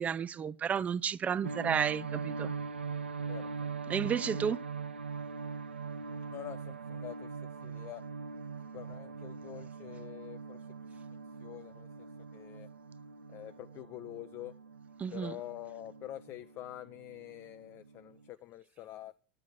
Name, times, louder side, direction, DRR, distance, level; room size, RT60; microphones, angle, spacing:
voice 1, 0.0-2.5 3.9-4.6 15.0-15.4, right 7 dB, 25° right, 0.4 m, -32 dB
sound 1, 1.4-18.3, right 5 dB, 85° right, 0.4 m, -42 dB
voice 2, 3.3-3.7 6.3-8.0 8.7-10.6 11.4-12.1 12.3-12.7 13.3-14.5 15.1-19.2, left 14 dB, 40° left, 0.5 m, -46 dB
9.4 x 7.3 x 7.9 m
figure-of-eight pair, 85°, 6 cm